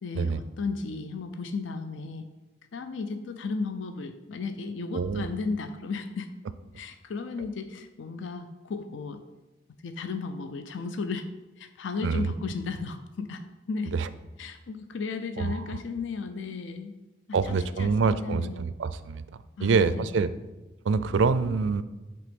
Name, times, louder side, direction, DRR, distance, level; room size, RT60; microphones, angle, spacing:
voice 1, 0.0-2.3 2.7-6.3 6.8-9.2 9.8-11.3 11.6-13.4 13.7-13.9 14.4-16.9 17.5-18.6 19.6-20.1, left 4 dB, 75° left, 9 dB, 0.5 m, -34 dB
voice 2, 4.9-5.3 12.0-12.3 13.9-14.1 15.4-15.8 17.3-19.2 19.6-20.3 20.9-21.8, right 5 dB, 70° right, 14 dB, 0.4 m, -26 dB
7.6 x 3.5 x 5.2 m, 1.1 s
head